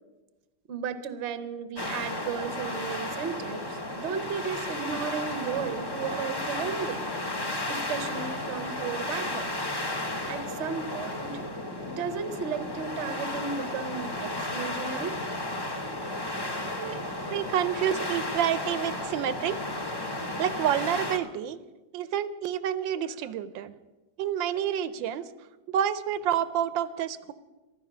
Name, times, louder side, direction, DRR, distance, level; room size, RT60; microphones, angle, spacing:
voice 1, 0.7-7.2 7.7-9.7 10.3-11.4 11.8-15.2, right 6 dB, 50° right, 12 dB, 0.9 m, -34 dB
sound 1, 1.8-21.2, left 1 dB, 20° left, 0.6 m, -33 dB
voice 2, 17.3-19.6 20.4-21.6 21.9-23.7 24.2-25.3 25.7-27.3, right 9 dB, 85° right, 15 dB, 1.4 m, -28 dB
15.0 x 12.0 x 6.0 m, 1.2 s
omnidirectional pair, 2.0 m